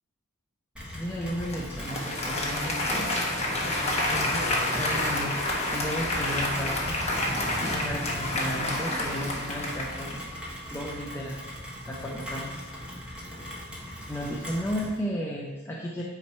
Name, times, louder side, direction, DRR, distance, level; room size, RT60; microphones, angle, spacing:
Rain, 0.8-15.0, equal, 5° right, 1.4 m, -38 dB
voice 1, 0.9-3.6 4.1-5.4 5.7-10.2 10.7-11.4 11.8-12.5 12.9-13.5 14.1-16.0, equal, 10° left, -3 dB, 0.6 m, -34 dB
Applause, 1.4-10.3, left 1 dB, 30° left, 1.1 m, -29 dB
9.0 x 3.0 x 4.5 m, 1.2 s
head